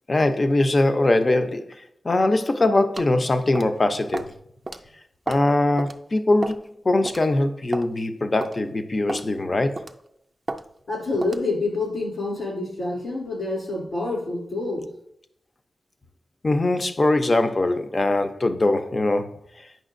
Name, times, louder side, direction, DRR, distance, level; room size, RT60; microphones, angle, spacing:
voice 1, 0.1-4.3 5.3-9.8 16.4-19.7, left 2 dB, 35° left, 8 dB, 0.5 m, -22 dB
sound 1, 3.0-3.1 3.5-3.8 4.1-4.3 4.7-4.8 5.3-5.5 5.8-5.9 6.4-6.7 7.1-7.2 7.7-7.9 8.4-8.6 9.1-9.3 9.8-10.0 10.5-10.6 11.2-11.4, right 2 dB, 30° right, 0.4 m, -31 dB
voice 2, 10.9-14.9, left 2 dB, 70° left, -3 dB, 2.9 m, -27 dB
9.0 x 5.7 x 2.5 m, 0.73 s
wide cardioid pair, 110°, 0 cm